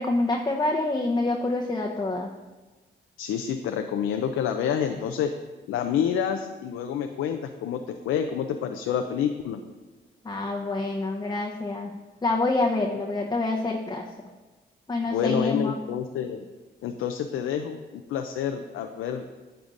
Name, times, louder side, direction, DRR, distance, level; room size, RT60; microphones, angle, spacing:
voice 1, 0.0-2.3 10.2-11.9 12.2-14.1 14.9-15.8, left 2 dB, 20° left, 0 dB, 0.8 m, -26 dB
voice 2, 3.2-5.3 5.7-9.6 15.0-16.4 16.8-19.2, left 8 dB, 90° left, 6 dB, 0.4 m, -28 dB
8.8 x 7.8 x 2.5 m, 1.2 s
cardioid pair, 60°, 21 cm